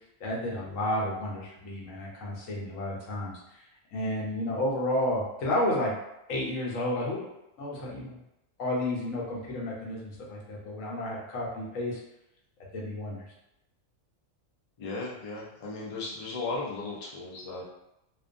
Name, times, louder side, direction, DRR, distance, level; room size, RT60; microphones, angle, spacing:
voice 1, 0.2-3.6 3.9-6.0 6.3-7.3 7.6-8.2 8.6-12.0 12.7-13.2, left 1 dB, 80° left, -4 dB, 1.1 m, -31 dB
voice 2, 14.8-17.6, left 3 dB, 50° left, -4 dB, 0.4 m, -36 dB
2.5 x 2.3 x 2.5 m, 0.87 s
omnidirectional pair, 1.4 m